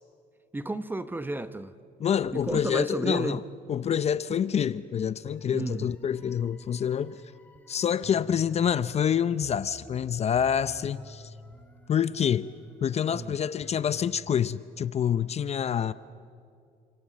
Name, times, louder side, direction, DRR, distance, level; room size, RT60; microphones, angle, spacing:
voice 1, 0.5-1.7 2.3-3.4 5.5-5.9 13.1-13.3, right 2 dB, 10° right, 0.8 m, -32 dB
voice 2, 2.0-3.4 3.7-7.2 7.7-11.3 11.9-12.5 12.8-15.9, left 8 dB, 40° left, 0.6 m, -27 dB
sound 1, 5.3-14.3, left 1 dB, 10° left, 2.0 m, -50 dB
27.5 x 26.5 x 7.4 m
cardioid pair, 110°, 17 cm